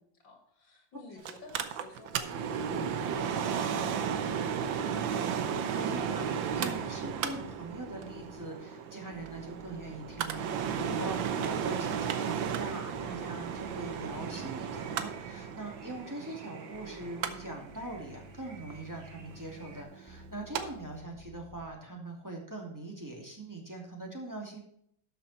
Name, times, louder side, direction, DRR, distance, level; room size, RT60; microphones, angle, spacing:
voice 1, 0.0-4.8, left 4 dB, 80° left, 3 dB, 3.1 m, -52 dB
Mechanical fan, 1.2-20.6 21.0-21.1, right 7 dB, 90° right, 1.7 m, -34 dB
voice 2, 5.7-24.6, right 2 dB, 10° right, -1 dB, 2.7 m, -42 dB
sound 1, 6.5-8.7 9.1-16.2 16.7-21.7, equal, 15° left, 1.2 m, -55 dB
sound 2, 10.8-19.8, right 5 dB, 65° right, 2.3 m, -55 dB
12.5 x 7.3 x 4.3 m, 0.67 s
omnidirectional pair, 2.0 m